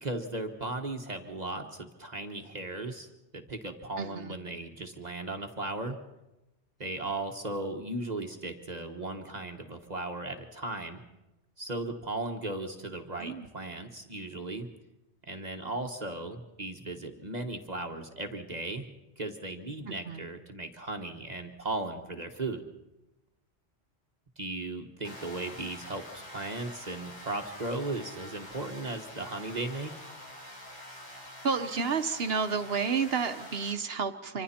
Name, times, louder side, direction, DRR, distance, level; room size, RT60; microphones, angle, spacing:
voice 1, 0.0-3.1 3.3-6.0 6.8-11.0 11.6-14.7 15.2-18.8 19.2-22.6 24.4-29.9, right 2 dB, 40° right, 4 dB, 1.3 m, -36 dB
voice 2, 4.0-4.4 13.2-13.5 19.9-20.2 31.4-34.4, right 5 dB, 65° right, 9 dB, 1.1 m, -31 dB
sound 1, 25.0-33.7, left 1 dB, 35° left, 5.9 m, -46 dB
26.0 x 25.0 x 4.3 m, 0.98 s
omnidirectional pair, 1.1 m